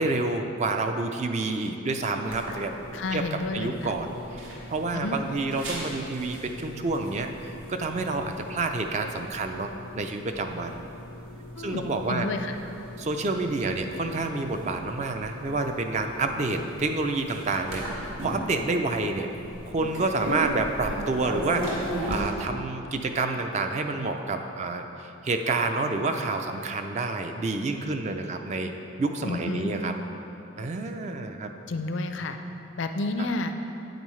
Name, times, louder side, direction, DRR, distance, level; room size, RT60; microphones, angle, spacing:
voice 1, 0.0-2.7 3.1-10.8 11.6-12.3 13.0-19.3 19.6-28.7 29.0-30.0 30.6-31.5 33.2-33.3, right 3 dB, 35° right, 5 dB, 0.4 m, -29 dB
sound 1, 2.3-22.2, equal, 80° right, 1.9 m, -38 dB
voice 2, 2.9-3.9 4.9-5.2 11.6-12.6 29.2-29.7 31.7-32.4 32.8-33.5, left 2 dB, 65° left, 7 dB, 0.5 m, -30 dB
9.0 x 8.4 x 3.2 m, 2.9 s
head